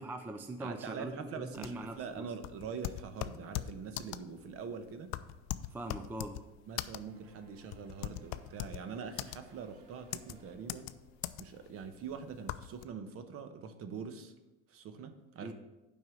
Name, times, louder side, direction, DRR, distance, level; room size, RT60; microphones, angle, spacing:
voice 1, 0.0-2.3 5.7-6.4 15.4-15.5, right 2 dB, 5° right, 6 dB, 0.4 m, -42 dB
voice 2, 0.6-5.1 6.7-10.9 11.4-14.3 14.7-15.5, right 6 dB, 40° right, 9 dB, 1.0 m, -44 dB
sound 1, 1.5-12.8, left 15 dB, 55° left, 0.5 m, -41 dB
sound 2, 7.1-11.5, right 6 dB, 70° right, 1.3 m, -63 dB
7.7 x 5.4 x 6.3 m, 1.0 s
supercardioid pair, 120°, 34 cm